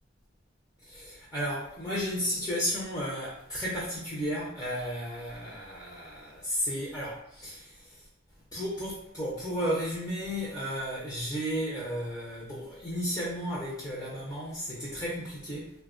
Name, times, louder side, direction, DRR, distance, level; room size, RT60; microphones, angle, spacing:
voice 1, 0.8-8.0 8.5-15.7, equal, 20° left, -8 dB, 0.5 m, -33 dB
3.2 x 2.2 x 2.4 m, 0.80 s
head